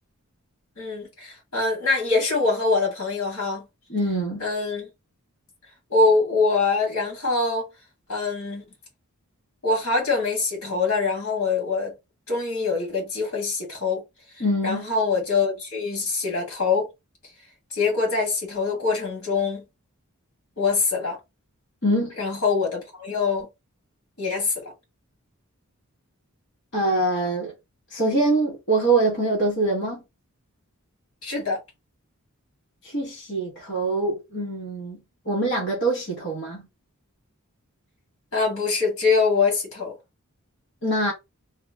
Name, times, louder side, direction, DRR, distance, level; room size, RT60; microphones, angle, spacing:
voice 1, 0.8-3.7 4.4-4.9 5.9-7.6 8.1-8.6 9.6-11.9 12.3-14.0 14.4-16.9 17.7-19.6 20.6-21.2 22.2-23.5 24.2-24.7 31.2-31.6 38.3-39.9, left 4 dB, 70° left, 2.0 m, -24 dB
voice 2, 3.9-4.4 14.4-14.9 21.8-22.1 26.7-27.5 27.9-30.0 32.8-35.0 35.2-36.6 40.8-41.1, right 2 dB, 50° left, 1.4 m, -24 dB
3.5 x 2.2 x 3.5 m
head